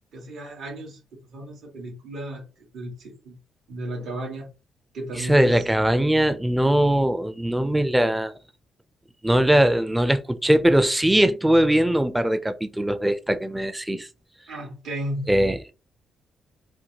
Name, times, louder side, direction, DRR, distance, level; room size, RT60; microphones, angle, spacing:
voice 1, 0.1-1.0 1.3-2.4 2.7-3.4 3.7-4.4 4.9-5.6 14.5-15.3, right 1 dB, 80° right, 1.8 m, -34 dB
voice 2, 5.2-8.3 9.2-14.1 15.3-15.6, right 1 dB, 10° right, 0.4 m, -20 dB
4.4 x 2.2 x 2.9 m
cardioid pair, 90°, 0 cm